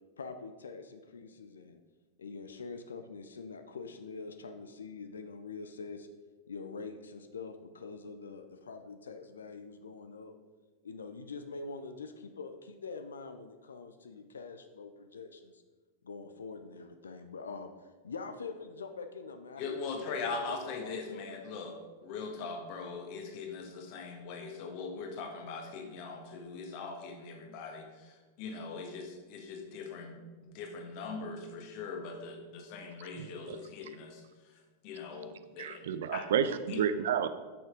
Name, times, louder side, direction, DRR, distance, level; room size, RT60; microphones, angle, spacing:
voice 1, 0.2-1.8 2.2-6.1 6.5-10.3 10.8-15.6 16.0-21.2, left 4 dB, 70° left, 0.6 m, -45 dB
voice 2, 19.6-21.7 22.0-34.2 34.8-35.8 36.1-36.2 36.7-36.8, left 4 dB, 45° left, 1.7 m, -41 dB
voice 3, 33.2-33.6 35.6-37.3, right 8 dB, 60° right, 0.5 m, -31 dB
10.0 x 6.5 x 5.2 m
figure-of-eight pair, 90°, 0 cm